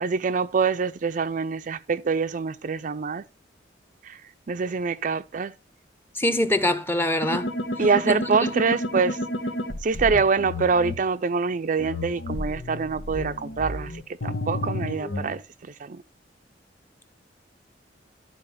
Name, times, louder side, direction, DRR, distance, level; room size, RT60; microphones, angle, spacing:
voice 1, 0.0-3.2 4.0-4.2 4.5-5.5 7.8-9.2 9.8-13.9 14.2-15.4 15.8-16.0, right 5 dB, 45° right, 0.4 m, -25 dB
voice 2, 6.2-7.5 8.1-8.2, left 1 dB, 15° left, 0.9 m, -23 dB
sound 1, 7.2-10.9 11.8-15.3, left 1 dB, 85° left, 1.3 m, -31 dB
12.0 x 4.2 x 5.6 m
head